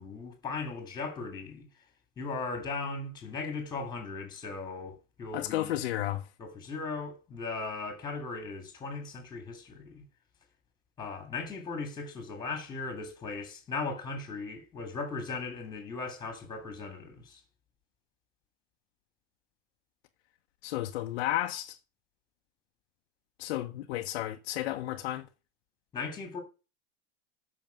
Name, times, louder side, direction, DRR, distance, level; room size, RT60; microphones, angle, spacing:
voice 1, 0.0-1.7 2.2-5.8 6.4-10.0 11.0-17.4 25.9-26.4, left 4 dB, 10° left, 3.0 m, -38 dB
voice 2, 5.3-6.2 20.6-21.8 23.4-25.3, left 14 dB, 60° left, 1.0 m, -32 dB
9.2 x 6.4 x 6.0 m
supercardioid pair, 170°, 37 cm